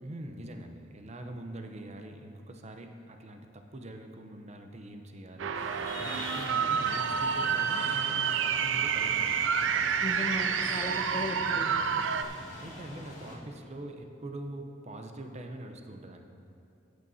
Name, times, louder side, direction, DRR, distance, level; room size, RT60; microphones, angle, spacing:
voice 1, 0.0-5.5 6.0-9.9 12.4-16.3, right 1 dB, 35° right, 5 dB, 0.7 m, -43 dB
sound 1, 5.4-12.2, right 7 dB, 75° right, 0.4 m, -29 dB
sound 2, 5.5-13.4, left 1 dB, 40° left, 2.1 m, -43 dB
voice 2, 10.0-12.1, left 1 dB, 25° left, 3 dB, 0.4 m, -37 dB
14.0 x 9.4 x 2.8 m, 2.6 s
head